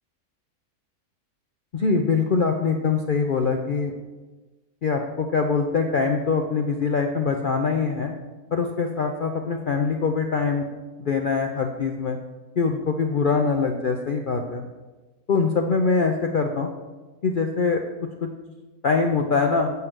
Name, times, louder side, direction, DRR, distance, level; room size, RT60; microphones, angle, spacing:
voice 1, 1.7-3.9 4.8-8.1 8.5-10.6 11.0-12.2 12.6-14.7 15.3-16.7 17.2-17.8 18.2-18.3 18.8-19.7, left 4 dB, 70° left, 3 dB, 0.5 m, -23 dB
7.8 x 5.6 x 6.1 m, 1.2 s
omnidirectional pair, 1.6 m